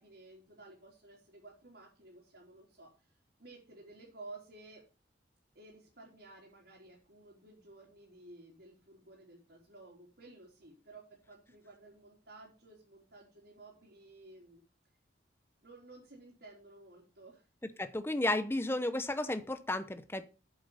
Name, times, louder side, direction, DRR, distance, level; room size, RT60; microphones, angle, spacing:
voice 1, 0.0-4.8 5.5-14.6 15.6-17.5, right 2 dB, 60° right, -4 dB, 3.8 m, -54 dB
voice 2, 17.8-20.3, left 1 dB, 15° left, 11 dB, 0.8 m, -33 dB
8.5 x 7.7 x 5.5 m, 0.33 s
head